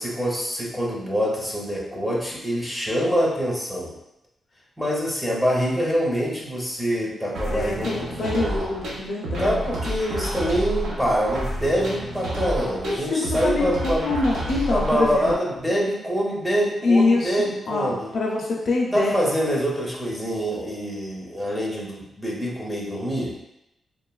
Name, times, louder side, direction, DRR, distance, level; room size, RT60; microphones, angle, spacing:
voice 1, 0.0-3.9 4.8-8.6 9.4-14.1 14.7-18.1 18.9-23.3, equal, 5° right, -4 dB, 0.5 m, -25 dB
sound 1, 7.3-15.3, right 1 dB, 85° right, 0.5 m, -30 dB
voice 2, 7.5-9.6 12.8-13.7 14.0-15.3 16.8-19.1, left 3 dB, 55° left, -2 dB, 0.5 m, -24 dB
3.0 x 2.1 x 2.2 m, 0.85 s
wide cardioid pair, 145°, 0 cm